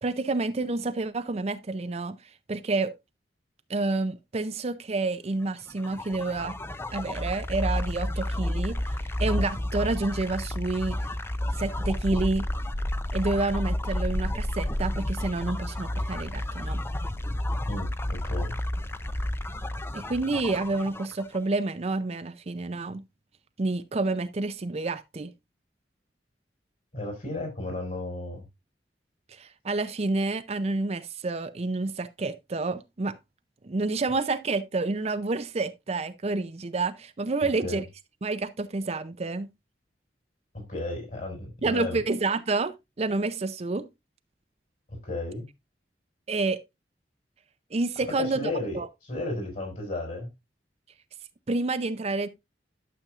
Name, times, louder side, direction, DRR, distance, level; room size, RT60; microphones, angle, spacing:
voice 1, 0.0-2.2 2.5-3.0 3.7-6.6 6.9-8.8 9.2-11.1 11.6-12.5 13.1-16.8 19.9-23.0 23.6-25.3 29.3-33.2 33.6-37.8 38.2-39.5 41.6-43.9 46.3-46.6 47.7-48.4 48.7-48.9 51.5-52.3, right 3 dB, 35° right, 0.5 m, -29 dB
sound 1, 5.7-21.4, left 1 dB, 15° left, 0.5 m, -31 dB
voice 2, 17.7-18.5 26.9-28.4 37.6-37.8 40.5-42.0 44.9-45.5 48.2-50.3, left 2 dB, 50° left, 4.6 m, -34 dB
12.0 x 7.1 x 2.4 m
head